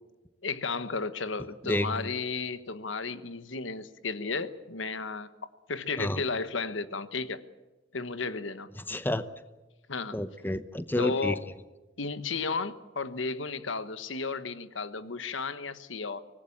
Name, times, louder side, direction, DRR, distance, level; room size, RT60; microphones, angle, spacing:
voice 1, 0.4-5.3 5.7-7.4 7.9-8.7 9.9-10.1 11.0-11.4 12.0-16.2, left 4 dB, 80° left, 13 dB, 1.3 m, -33 dB
voice 2, 1.6-2.1 6.0-6.2 8.9-9.3 10.1-11.4, left 1 dB, 10° left, 12 dB, 0.7 m, -30 dB
25.0 x 19.0 x 8.6 m, 1.1 s
head